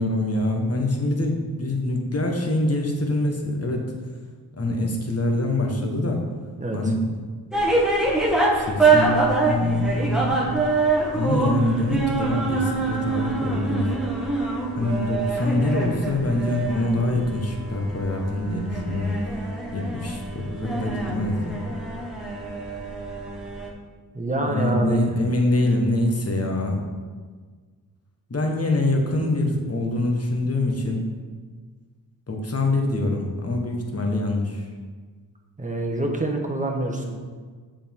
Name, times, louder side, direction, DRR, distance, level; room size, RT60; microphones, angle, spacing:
voice 1, 0.0-3.8 4.5-6.2 6.7-7.0 8.5-10.4 11.1-13.9 14.8-19.2 19.7-21.6 24.5-26.8 28.3-31.1 32.3-34.7, left 2 dB, 35° left, 1 dB, 1.4 m, -24 dB
sound 1, 7.5-23.7, right 3 dB, ahead, 1.4 m, -25 dB
voice 2, 24.1-25.0 35.6-37.2, right 1 dB, 20° right, 1 dB, 1.2 m, -26 dB
7.0 x 5.1 x 3.6 m, 1.5 s
cardioid pair, 50°, 42 cm